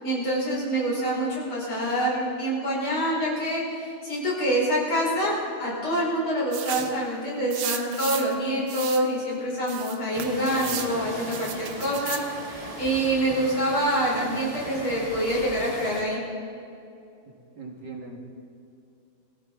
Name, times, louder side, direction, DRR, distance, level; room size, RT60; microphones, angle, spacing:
voice 1, 0.0-12.2 12.8-16.2, right 1 dB, 75° left, -5 dB, 5.8 m, -26 dB
sound 1, 6.5-7.0 7.5-8.3 8.7-9.1 9.7-10.9 11.3-12.3, right 10 dB, 75° right, 1.6 m, -34 dB
sound 2, 10.1-16.0, right 1 dB, 20° right, 1.4 m, -38 dB
voice 2, 17.3-18.3, right 3 dB, 55° right, 0 dB, 2.3 m, -41 dB
22.0 x 15.0 x 3.7 m, 2.6 s
omnidirectional pair, 2.4 m